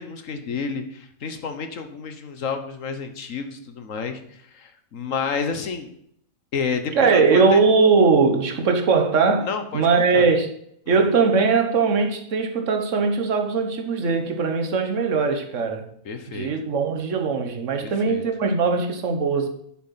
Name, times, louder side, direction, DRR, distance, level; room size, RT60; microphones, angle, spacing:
voice 1, 0.0-5.9 6.5-7.6 9.4-10.3 10.9-11.0 16.0-16.5 17.8-18.2, left 5 dB, 65° left, 1.6 m, -30 dB
voice 2, 6.9-9.5 9.7-10.5 10.9-15.9 16.3-19.5, right 4 dB, 60° right, 1.6 m, -20 dB
9.4 x 7.6 x 5.7 m
omnidirectional pair, 1.5 m